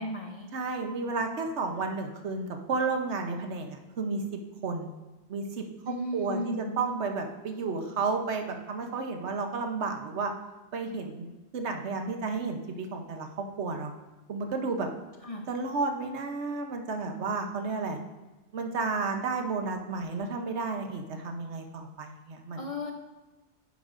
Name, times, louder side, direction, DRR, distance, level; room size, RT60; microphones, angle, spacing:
voice 1, 0.0-0.5 5.9-6.9 15.2-15.4 22.6-22.9, left 1 dB, 35° left, 1 dB, 0.7 m, -35 dB
voice 2, 0.5-4.2 4.6-4.9 5.3-10.3 10.7-11.3 11.5-13.9 14.3-14.9 15.5-18.0 18.5-22.6, right 4 dB, 75° right, 4 dB, 1.2 m, -32 dB
9.4 x 6.9 x 2.5 m, 1.1 s
omnidirectional pair, 1.2 m